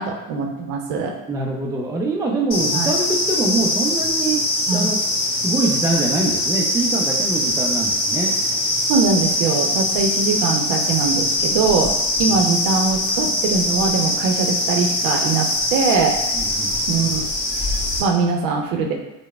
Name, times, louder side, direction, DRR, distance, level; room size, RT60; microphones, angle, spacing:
voice 1, 0.0-1.1 2.7-2.9 4.7-4.9 8.9-16.2 16.9-17.2 17.6-17.7 18.0-18.9, right 4 dB, 55° right, 2 dB, 0.7 m, -22 dB
voice 2, 1.3-5.0 5.4-8.3 16.3-16.8, right 2 dB, 10° right, -1 dB, 0.4 m, -24 dB
sound 1, 2.5-18.0, left 1 dB, 50° left, 1.1 m, -22 dB
4.6 x 2.2 x 2.3 m, 0.94 s
hypercardioid pair, 85°, 39 cm